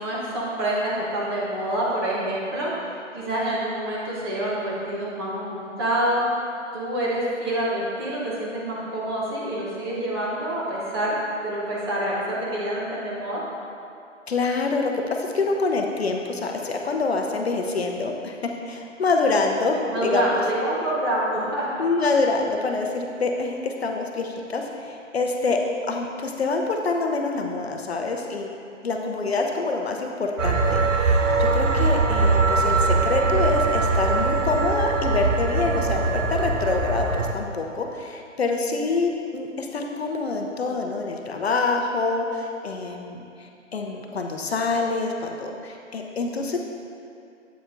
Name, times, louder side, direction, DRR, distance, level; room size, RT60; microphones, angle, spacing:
voice 1, 0.0-2.7 3.1-6.2 6.7-11.2 11.4-13.4 19.9-21.7, right 1 dB, 20° right, -6 dB, 1.0 m, -27 dB
voice 2, 14.3-20.4 21.8-25.6 25.9-28.5 28.8-46.6, left 3 dB, 55° left, 2 dB, 0.7 m, -26 dB
sound 1, 30.4-37.3, right 3 dB, 75° right, 0.7 m, -22 dB
8.0 x 7.6 x 2.5 m, 2.5 s
figure-of-eight pair, 145°, 38 cm